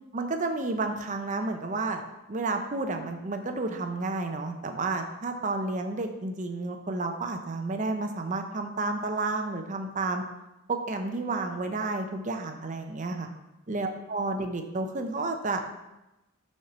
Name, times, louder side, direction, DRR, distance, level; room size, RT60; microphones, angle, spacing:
voice 1, 0.1-2.0 2.3-10.2 10.7-13.3 13.7-15.7, right 3 dB, 35° right, 5 dB, 0.6 m, -31 dB
6.2 x 4.3 x 6.0 m, 0.98 s
head